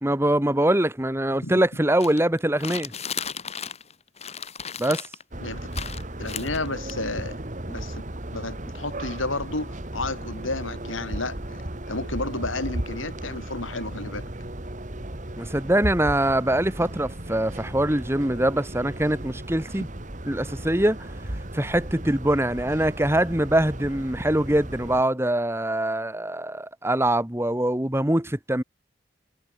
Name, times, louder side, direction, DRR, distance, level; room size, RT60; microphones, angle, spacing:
voice 1, 0.0-2.9 4.8-5.0 15.4-19.9 20.3-21.0 21.5-28.6, right 1 dB, 15° right, 1.5 m, -23 dB
sound 1, 2.0-3.9 4.2-5.2 5.7-6.9, left 7 dB, 35° left, 2.4 m, -35 dB
sound 2, 5.3-25.0, right 1 dB, 40° right, 2.3 m, -35 dB
voice 2, 6.2-7.4 7.7-8.0 8.3-11.6 11.9-14.2, left 2 dB, 85° left, 6.2 m, -31 dB
head